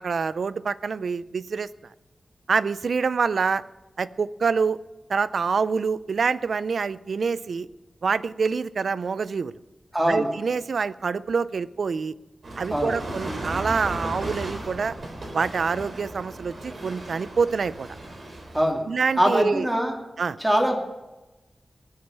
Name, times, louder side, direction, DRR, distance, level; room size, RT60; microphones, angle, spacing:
voice 1, 0.0-1.7 2.5-3.6 4.0-4.8 5.1-7.7 8.0-9.5 10.1-12.1 12.6-15.0 15.3-17.9 18.9-19.7 20.2-20.4, right 5 dB, 80° right, 17 dB, 0.5 m, -26 dB
voice 2, 9.9-10.3 12.7-12.9 18.5-18.8 19.2-20.0 20.4-20.8, equal, 10° right, 1 dB, 2.6 m, -22 dB
sound 1, 12.4-18.7, right 1 dB, 60° right, 3.6 m, -35 dB
19.0 x 6.4 x 8.2 m, 1.0 s
wide cardioid pair, 115°, 0 cm